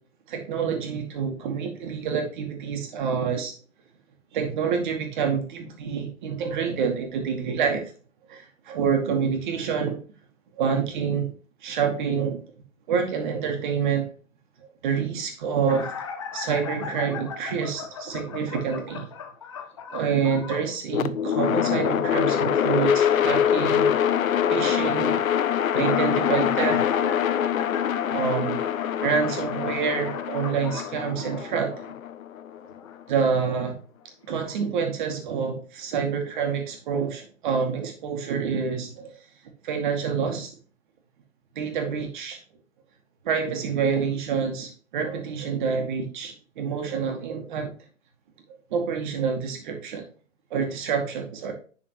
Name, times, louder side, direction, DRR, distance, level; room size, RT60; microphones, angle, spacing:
voice 1, 0.3-3.5 4.3-7.8 8.3-10.0 10.6-11.3 11.6-12.4 12.9-14.1 14.8-16.1 16.3-19.1 19.9-23.9 24.5-25.2 25.7-27.1 28.1-28.7 29.0-31.8 33.1-33.8 34.3-39.2 39.6-40.5 41.6-42.4 43.2-47.7 48.7-50.1 50.5-51.5, right 6 dB, 35° right, 4 dB, 2.0 m, -27 dB
sound 1, 15.7-20.7 25.6-31.7 32.8-33.0 34.0-34.1 34.5-34.6, left 6 dB, 25° left, 0.5 m, -38 dB
sound 2, 20.9-33.0, left 9 dB, 90° left, 0.7 m, -24 dB
10.5 x 4.3 x 3.0 m, 0.39 s
hypercardioid pair, 155°, 40 cm